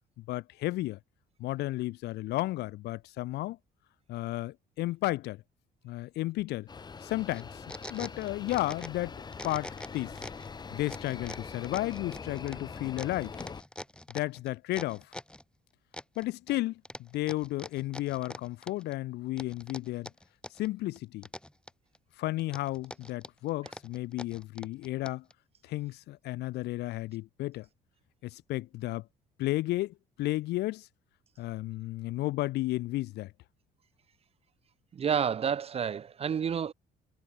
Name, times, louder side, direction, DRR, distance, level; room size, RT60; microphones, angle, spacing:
voice 1, 0.2-1.0 1.4-3.6 4.1-5.4 5.8-6.7 7.0-9.2 9.4-10.1 10.7-13.4 14.1-15.0 16.2-20.1 20.6-21.3 22.2-25.2 25.7-27.7 28.2-29.0 29.4-30.9 31.4-33.3, left 17 dB, 80° left, 1.8 m, -33 dB
sound 1, 6.7-13.6, left 5 dB, 25° left, 1.1 m, -43 dB
sound 2, 7.3-9.1 9.3-10.5 10.9-15.4 15.9-16.6 16.9-19.0 19.4-20.7 21.0-22.0 22.4-25.3, left 1 dB, 5° left, 3.4 m, -44 dB
voice 2, 34.9-36.7, right 7 dB, 35° right, 0.8 m, -29 dB
cardioid pair, 110°, 17 cm